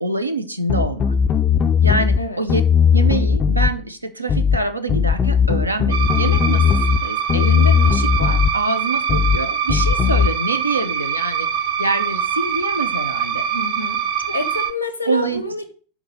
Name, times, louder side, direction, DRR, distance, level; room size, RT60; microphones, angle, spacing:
voice 1, 0.0-1.1 1.8-2.6 2.9-13.5 14.3-14.4 15.1-15.4, right 2 dB, 85° right, 8 dB, 0.7 m, -25 dB
sound 1, 0.7-2.2 2.5-3.7 4.3-4.6 4.9-7.0 7.3-8.5 9.1-9.4 9.7-10.3, left 7 dB, 25° left, 0.4 m, -17 dB
sound 2, 5.9-14.7, right 8 dB, 45° right, 0.6 m, -24 dB
voice 2, 13.5-14.0 14.3-15.6, left 2 dB, 85° left, 9 dB, 1.1 m, -27 dB
7.3 x 3.9 x 6.5 m, 0.40 s
figure-of-eight pair, 90°, 0 cm